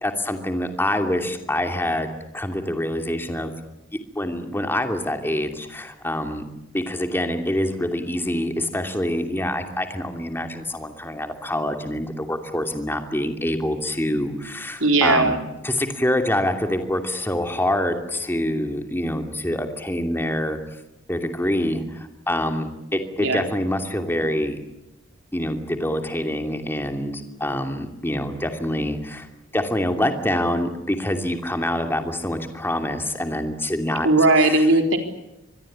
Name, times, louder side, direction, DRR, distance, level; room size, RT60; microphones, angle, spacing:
voice 1, 0.0-3.5 4.1-6.4 6.7-15.4 15.6-20.6 21.1-24.6 25.3-29.3 29.5-34.1 34.4-34.7, left 1 dB, 10° left, 5 dB, 2.7 m, -26 dB
voice 2, 14.8-15.4 23.2-23.4 34.0-35.0, right 2 dB, 80° right, 5 dB, 4.0 m, -17 dB
25.5 x 21.0 x 8.8 m, 0.90 s
head